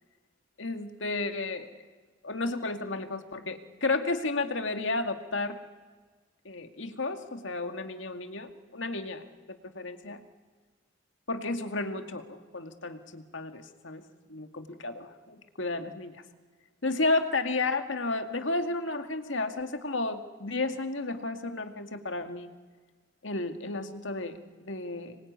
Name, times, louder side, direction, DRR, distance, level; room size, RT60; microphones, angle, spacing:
voice 1, 0.6-1.7 2.2-5.6 6.5-10.2 11.3-14.0 14.3-16.2 16.8-22.5 23.2-25.2, left 3 dB, 85° left, 7 dB, 2.2 m, -32 dB
26.0 x 22.5 x 9.6 m, 1.4 s
head